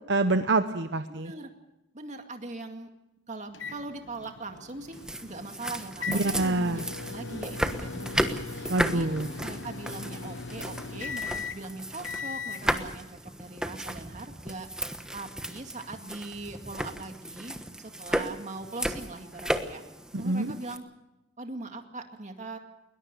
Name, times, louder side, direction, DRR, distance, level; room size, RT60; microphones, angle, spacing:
voice 1, 0.1-1.3 6.1-6.8 8.7-9.3 20.1-20.5, right 2 dB, 65° right, 9 dB, 0.9 m, -26 dB
voice 2, 1.1-1.5 1.9-2.9 3.3-9.1 9.4-14.7 15.1-19.8 20.2-20.8 21.4-22.6, right 2 dB, 40° right, 5 dB, 2.2 m, -41 dB
sound 1, 3.5-12.6, left 4 dB, 70° left, 1.1 m, -39 dB
sound 2, 4.9-20.8, right 1 dB, 5° right, 1.2 m, -34 dB
21.0 x 21.0 x 6.7 m, 0.92 s
head